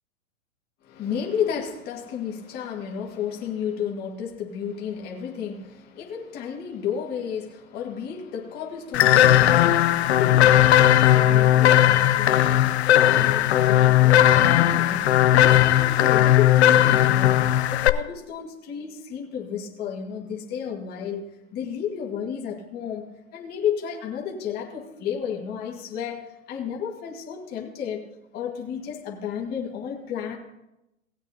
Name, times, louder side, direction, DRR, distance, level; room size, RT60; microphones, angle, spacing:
voice 1, 0.8-15.1 15.4-21.2 21.5-28.1 28.3-30.4, left 8 dB, 20° left, 1.8 m, -32 dB
sound 1, 8.9-17.9, left 12 dB, 50° left, 0.6 m, -17 dB
19.0 x 8.7 x 2.8 m
hypercardioid pair, 150°, 43 cm